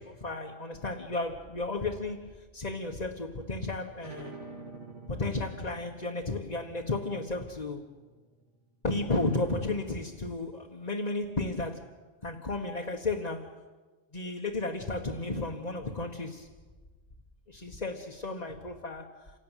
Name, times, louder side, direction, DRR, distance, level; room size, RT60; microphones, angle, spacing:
voice 1, 0.0-4.4 5.1-7.8 8.8-11.9 12.2-13.6 14.1-16.5 17.5-19.3, left 2 dB, 35° left, 1.6 m, -33 dB
sound 1, 4.0-9.3, right 3 dB, 80° right, 2.8 m, -49 dB
28.0 x 17.5 x 9.2 m
omnidirectional pair, 1.2 m